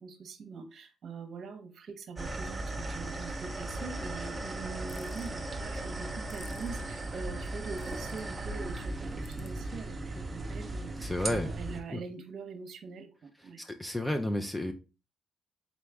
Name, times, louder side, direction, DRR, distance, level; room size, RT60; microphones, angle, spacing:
voice 1, 0.0-13.6, right 4 dB, 60° right, 7 dB, 0.8 m, -43 dB
sound 1, 2.2-11.8, right 2 dB, 20° right, 0.7 m, -37 dB
sound 2, 4.9-5.3 6.3-6.7 7.8-8.2 9.2-9.5, left 9 dB, 80° left, 0.4 m, -52 dB
voice 2, 11.0-11.5 11.9-12.0 13.6-14.7, left 1 dB, 10° left, 5 dB, 0.5 m, -31 dB
4.0 x 3.2 x 3.5 m, 0.32 s
cardioid pair, 90°, 0 cm